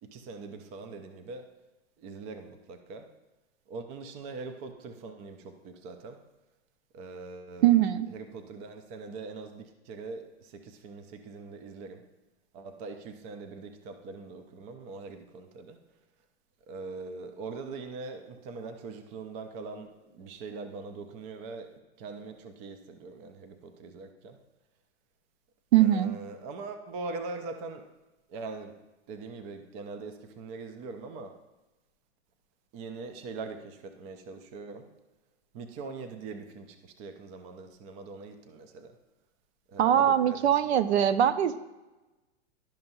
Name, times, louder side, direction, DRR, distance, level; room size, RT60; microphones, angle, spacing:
voice 1, 0.0-1.5 2.0-3.1 3.7-6.2 6.9-12.0 12.5-15.8 16.7-24.4 25.8-27.9 28.3-28.8 29.1-31.4 32.7-34.9 35.5-39.0 39.7-41.2, right 3 dB, 20° right, 8 dB, 0.4 m, -42 dB
voice 2, 7.6-8.1 25.7-26.1 39.8-41.6, right 11 dB, 70° right, 12 dB, 0.6 m, -22 dB
11.5 x 5.5 x 2.6 m, 1.1 s
hypercardioid pair, 145°, 34 cm